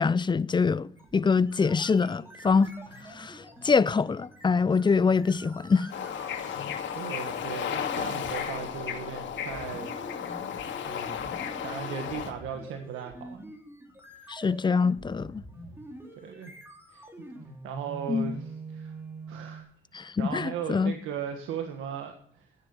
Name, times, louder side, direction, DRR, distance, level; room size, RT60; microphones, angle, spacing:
voice 1, 0.0-2.7 3.1-5.9 14.3-15.4 18.1-18.3 19.9-20.9, left 5 dB, 25° left, 0.6 m, -25 dB
sound 1, 1.0-19.6, right 2 dB, 10° right, 3.6 m, -46 dB
Bird / Ocean, 5.9-12.3, left 8 dB, 70° left, 2.5 m, -34 dB
voice 2, 6.9-9.9 10.4-10.5 10.9-13.4 14.2-14.3 16.2-16.5 16.9-17.0 17.6-19.0 19.3-19.7 20.0-22.5, right 8 dB, 90° right, 1.6 m, -37 dB
13.0 x 10.0 x 7.0 m
cardioid pair, 90°, 20 cm